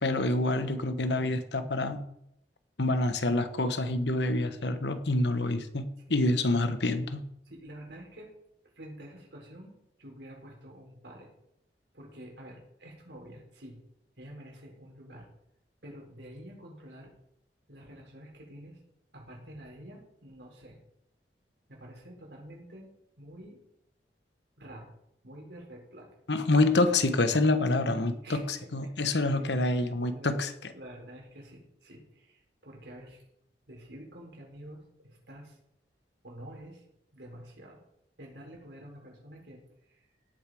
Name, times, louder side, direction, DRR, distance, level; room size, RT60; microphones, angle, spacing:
voice 1, 0.0-2.0 2.8-7.2 26.3-30.7, left 2 dB, 75° left, 10 dB, 1.1 m, -27 dB
voice 2, 7.4-8.3 8.7-11.3 11.9-13.8 14.2-15.3 15.8-17.1 17.7-18.8 19.1-20.8 21.7-22.9 23.2-23.6 24.6-24.9 25.2-26.1 27.9-28.5 28.8-29.4 30.0-33.2 33.7-35.6 36.2-36.8 37.1-37.8 38.2-40.0, right 1 dB, 75° right, 0 dB, 4.3 m, -48 dB
17.5 x 6.9 x 4.9 m, 0.80 s
head